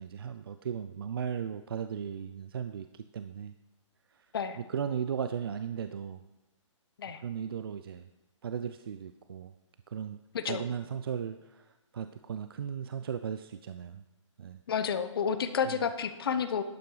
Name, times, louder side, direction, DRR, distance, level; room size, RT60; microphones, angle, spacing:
voice 1, 0.0-3.5 4.7-6.2 7.2-8.0 8.4-9.5 9.9-10.2 10.5-11.7 11.9-14.0 14.4-14.6 15.7-15.8, right 8 dB, 45° right, 10 dB, 0.4 m, -36 dB
voice 2, 14.7-16.6, left 7 dB, 45° left, 10 dB, 0.8 m, -30 dB
12.0 x 8.5 x 3.9 m, 1.1 s
hypercardioid pair, 170°, 17 cm